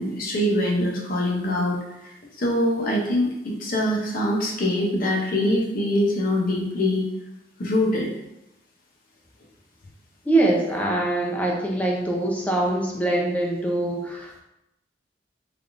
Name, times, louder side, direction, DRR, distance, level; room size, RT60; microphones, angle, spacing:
voice 1, 0.0-1.8 2.0-7.1 7.6-8.1, left 1 dB, 50° left, -2 dB, 0.6 m, -24 dB
voice 2, 10.3-14.4, right 2 dB, 10° left, -2 dB, 0.4 m, -23 dB
3.4 x 2.4 x 2.5 m, 0.89 s
head